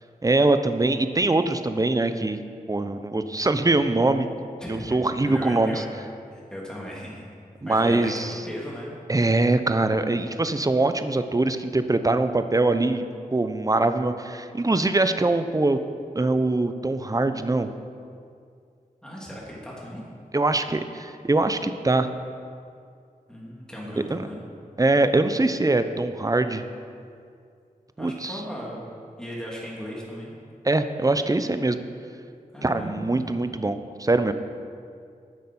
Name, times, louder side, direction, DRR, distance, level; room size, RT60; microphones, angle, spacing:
voice 1, 0.2-2.4 2.7-4.3 4.7-5.8 7.6-8.4 9.1-13.1 13.3-15.8 16.1-17.7 20.3-22.1 24.1-24.2 24.8-26.6 28.0-28.4 30.6-31.8 32.6-34.3, right 2 dB, 25° right, 10 dB, 0.6 m, -23 dB
voice 2, 4.6-5.9 6.3-7.2 7.7-8.9 19.0-20.0 23.3-24.5 28.0-28.8 29.2-30.3 32.5-33.3, equal, 5° left, -5 dB, 2.9 m, -37 dB
10.5 x 6.5 x 5.5 m, 2.3 s
cardioid pair, 45°, 15 cm